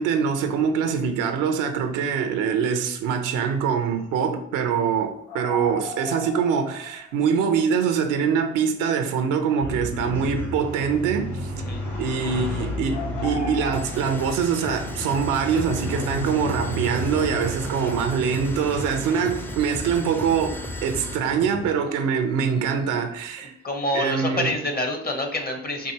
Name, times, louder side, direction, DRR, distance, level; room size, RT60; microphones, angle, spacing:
voice 1, 0.0-11.5 12.0-23.5 23.9-24.5, right 6 dB, 80° right, 0.6 m, -24 dB
sound 1, 5.3-7.0 7.3-7.4 9.9-10.6 11.0-11.3 12.9-14.3, left 3 dB, 85° left, 0.6 m, -36 dB
sound 2, 9.6-21.8, left 1 dB, 65° left, 1.4 m, -33 dB
sound 3, 13.7-21.3, equal, 5° left, 0.6 m, -36 dB
voice 2, 23.4-25.9, left 1 dB, 30° left, 1.0 m, -27 dB
4.6 x 2.5 x 2.9 m
hypercardioid pair, 45°, 31 cm